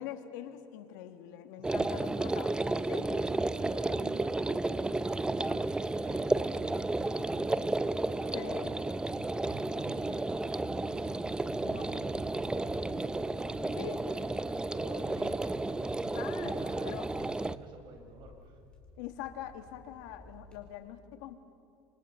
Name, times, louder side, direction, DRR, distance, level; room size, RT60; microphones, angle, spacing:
voice 1, 0.0-3.2 8.3-8.7 11.6-12.3 12.5-13.0 13.8-14.0 16.1-17.1 19.0-21.3, left 12 dB, 85° left, 7 dB, 2.0 m, -44 dB
sound 1, 1.6-17.6, right 2 dB, 10° right, 0.6 m, -32 dB
voice 2, 1.6-2.2 2.9-8.5 9.1-18.6, right 3 dB, 55° right, 5 dB, 4.7 m, -50 dB
sound 2, 11.4-20.8, left 1 dB, 10° left, 4.6 m, -56 dB
27.0 x 26.5 x 5.8 m, 2.5 s
supercardioid pair, 125°, 10 cm